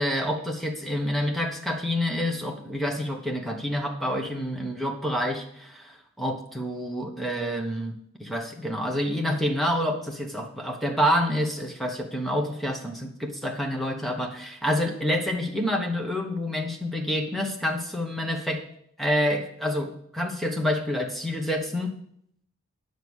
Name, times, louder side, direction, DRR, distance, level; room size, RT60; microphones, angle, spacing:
voice 1, 0.0-7.9 8.2-18.6 19.0-21.9, equal, ahead, 1 dB, 1.1 m, -28 dB
9.2 x 6.7 x 6.3 m, 0.69 s
head